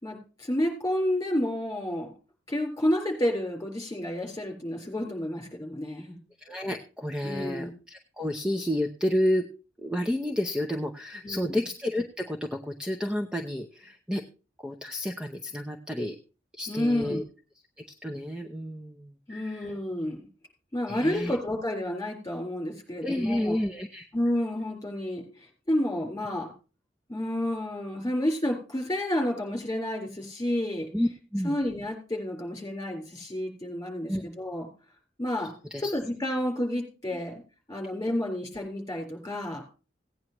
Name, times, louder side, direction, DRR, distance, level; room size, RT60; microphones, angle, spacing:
voice 1, 0.0-2.1 2.5-6.2 7.2-7.7 11.2-11.6 16.7-17.2 19.3-20.3 20.7-23.6 24.1-26.5 27.1-30.9 31.4-34.7 35.2-35.5 35.8-37.4 37.7-39.6, left 1 dB, 20° left, 2 dB, 4.0 m, -30 dB
voice 2, 6.4-9.5 9.8-14.2 14.6-16.2 16.6-17.2 17.8-19.7 20.9-21.4 23.0-24.1 30.9-31.6 34.0-34.2 35.7-35.9 37.1-37.2, left 1 dB, 5° right, 4 dB, 0.7 m, -30 dB
17.0 x 9.3 x 3.0 m, 0.34 s
head